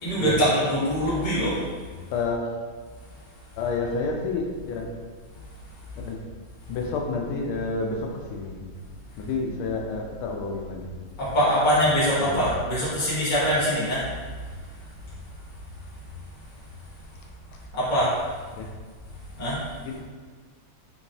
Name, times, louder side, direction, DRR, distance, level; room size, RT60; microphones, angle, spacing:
voice 1, 0.0-1.5 11.2-14.0 17.7-18.1 19.4-19.6, equal, 25° left, -9 dB, 1.2 m, -23 dB
voice 2, 2.1-2.5 3.6-4.9 6.0-6.2 6.7-8.7 9.2-11.1 12.2-12.5 18.5-18.7 19.8-20.0, left 4 dB, 90° left, 1 dB, 1.5 m, -29 dB
4.4 x 2.9 x 2.6 m, 1.5 s
omnidirectional pair, 2.3 m